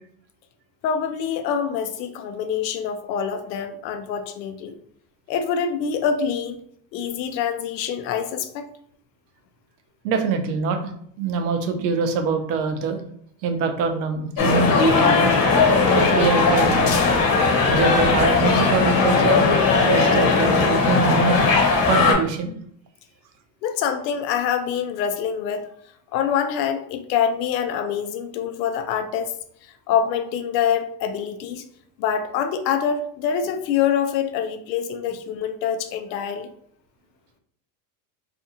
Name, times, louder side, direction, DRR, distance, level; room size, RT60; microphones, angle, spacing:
voice 1, 0.8-4.7 5.3-6.6 6.9-8.7 23.6-25.7 26.1-29.3 29.9-31.6 32.0-36.5, left 7 dB, 90° left, 8 dB, 0.6 m, -25 dB
voice 2, 10.0-10.9 11.2-13.0 13.4-15.4 15.9-17.0 17.7-21.4 21.9-22.5, right 4 dB, 90° right, 6 dB, 0.7 m, -24 dB
sound 1, 14.4-22.1, left 4 dB, 45° left, 0.9 m, -18 dB
2.6 x 2.4 x 2.7 m, 0.64 s
supercardioid pair, 95°, 50 cm